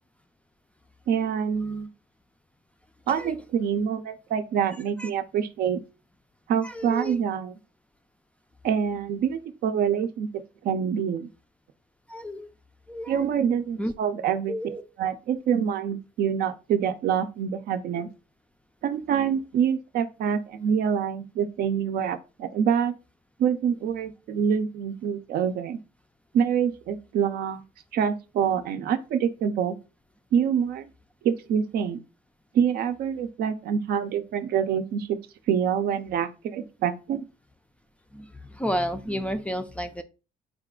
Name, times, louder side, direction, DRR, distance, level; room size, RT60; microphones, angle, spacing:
voice 1, 1.1-1.9 3.1-5.8 6.5-7.5 8.6-10.3 10.6-11.3 13.1-14.5 15.0-18.1 18.8-22.9 23.4-25.8 26.3-27.6 27.9-29.8 30.3-30.9 31.2-32.0 32.5-35.2 35.5-37.3, right 8 dB, 65° right, 0.5 m, -26 dB
voice 2, 6.6-7.2 12.1-12.5 12.9-13.3 13.8-13.9 14.5-14.8 38.1-40.0, equal, 5° left, 0.4 m, -31 dB
4.1 x 2.3 x 3.6 m
cardioid pair, 110°, 17 cm